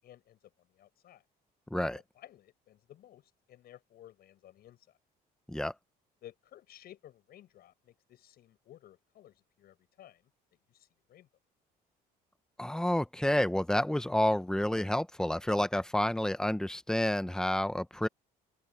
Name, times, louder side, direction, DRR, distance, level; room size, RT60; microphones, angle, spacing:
voice 1, 0.0-0.4 0.7-1.2 1.8-5.0 6.2-10.2 10.7-11.3, left 12 dB, 65° left, 7.9 m, -56 dB
voice 2, 12.6-18.1, left 1 dB, 5° left, 0.9 m, -29 dB
open air
cardioid pair, 110°, 17 cm